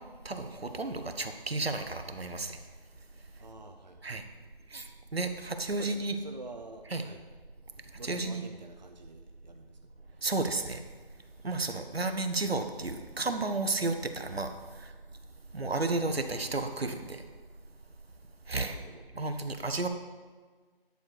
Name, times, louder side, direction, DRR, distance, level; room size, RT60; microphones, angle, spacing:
voice 1, 0.2-2.6 4.0-4.2 4.7-6.1 6.9-7.0 8.0-8.4 10.2-10.8 11.4-14.5 14.8-14.9 15.5-17.2 18.5-18.8 19.2-19.9, right 3 dB, 80° right, 7 dB, 1.1 m, -32 dB
voice 2, 3.4-4.3 5.8-7.2 8.0-10.3 11.6-11.9 18.6-19.0, right 2 dB, 45° right, 4 dB, 0.7 m, -48 dB
10.5 x 6.6 x 4.8 m, 1.4 s
figure-of-eight pair, 175°, 30 cm